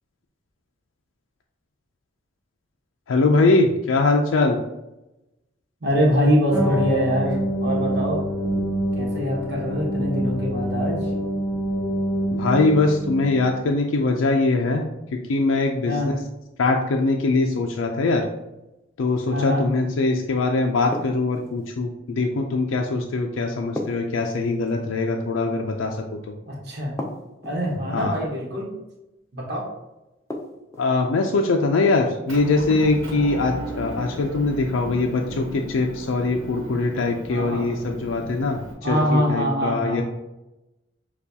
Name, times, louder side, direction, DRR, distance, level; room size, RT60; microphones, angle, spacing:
voice 1, 3.1-4.6 12.3-14.8 15.3-15.9 16.6-18.2 19.0-26.0 27.9-28.1 30.8-38.6 38.9-40.0, left 3 dB, 80° left, 2 dB, 0.4 m, -22 dB
voice 2, 5.8-8.2 8.9-11.1 15.8-16.1 19.3-19.7 26.5-26.9 27.4-28.7 29.3-29.7 37.3-37.8 38.8-40.0, equal, 55° right, -3 dB, 1.1 m, -24 dB
sound 1, 6.5-13.6, equal, 20° right, 0.9 m, -26 dB
sound 2, 20.9-21.7 23.8-24.8 27.0-27.7 30.3-30.9, left 1 dB, 15° left, 0.5 m, -34 dB
Motor vehicle (road) / Engine, 32.3-38.7, equal, 80° right, 1.1 m, -36 dB
6.7 x 2.3 x 2.7 m, 0.96 s
head